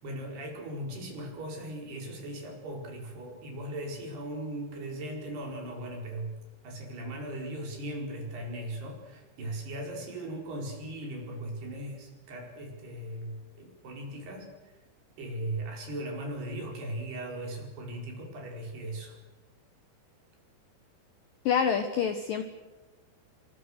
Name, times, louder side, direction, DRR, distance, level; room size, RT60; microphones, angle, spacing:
voice 1, 0.0-6.4 6.6-14.7 15.2-19.2, right 1 dB, 60° right, 1 dB, 6.7 m, -38 dB
voice 2, 21.5-22.4, left 7 dB, 70° left, 9 dB, 2.1 m, -26 dB
27.5 x 24.0 x 6.6 m, 1.2 s
omnidirectional pair, 5.5 m